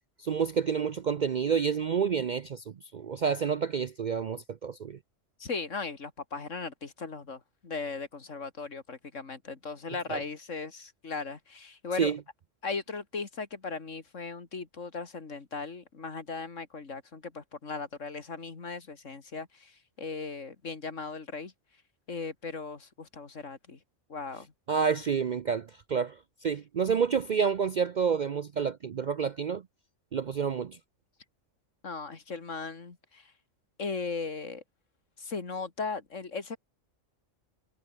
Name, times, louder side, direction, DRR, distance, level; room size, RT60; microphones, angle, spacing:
voice 1, 0.2-5.0 10.1-10.2 12.0-12.2 24.7-29.6 30.1-30.8, right 6 dB, 55° right, 0.5 m, -29 dB
voice 2, 5.4-12.1 12.6-21.5 22.1-23.8 24.1-24.5 31.8-33.3 33.8-34.6 35.2-36.6, left 4 dB, 70° left, 2.6 m, -37 dB
omnidirectional pair, 1.3 m